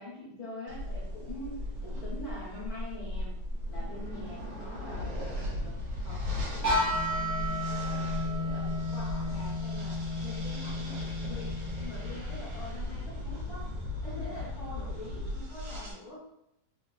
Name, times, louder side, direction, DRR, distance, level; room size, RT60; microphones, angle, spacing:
voice 1, 0.0-3.3 3.7-13.7 14.0-16.3, left 1 dB, 55° left, -9 dB, 1.7 m, -45 dB
sound 1, 0.7-15.9, left 1 dB, 75° right, 1.5 m, -37 dB
sound 2, 6.6-12.4, left 1 dB, 45° right, 1.0 m, -32 dB
3.8 x 2.9 x 2.4 m, 0.79 s
omnidirectional pair, 1.9 m